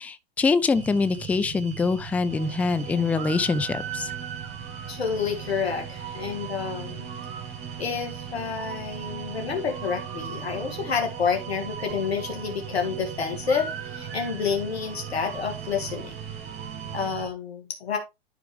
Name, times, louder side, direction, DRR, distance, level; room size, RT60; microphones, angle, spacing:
voice 1, 0.0-4.1, left 4 dB, 5° left, 0.3 m, -24 dB
sound 1, 0.7-17.3, right 8 dB, 60° right, 4.5 m, -40 dB
sound 2, 2.3-17.1, right 7 dB, 30° right, 1.4 m, -40 dB
voice 2, 4.9-7.1 7.8-16.1 16.9-18.0, left 6 dB, 80° left, 2.0 m, -29 dB
11.0 x 4.9 x 3.2 m
hypercardioid pair, 105°, 31 cm